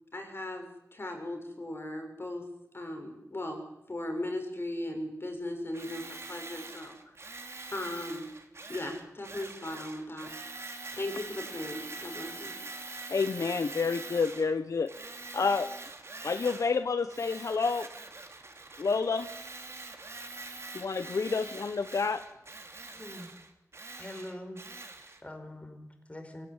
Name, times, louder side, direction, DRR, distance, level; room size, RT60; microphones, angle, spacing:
voice 1, 0.1-2.4 2.7-3.6 3.9-7.1 7.7-8.3 8.7-10.3 10.9-12.5, left 1 dB, 45° left, 4 dB, 6.7 m, -37 dB
Tools, 5.7-14.5 14.9-16.8 17.1-25.2, right 3 dB, 50° right, 3.3 m, -44 dB
voice 2, 13.1-14.9 15.3-15.7 16.2-17.9 18.8-19.3 20.7-22.2, left 4 dB, 75° left, 10 dB, 1.0 m, -29 dB
voice 3, 22.9-23.3 24.0-24.6 25.0-26.5, left 1 dB, 25° left, 6 dB, 5.4 m, -44 dB
23.5 x 17.5 x 9.7 m, 0.88 s
wide cardioid pair, 75°, 6 cm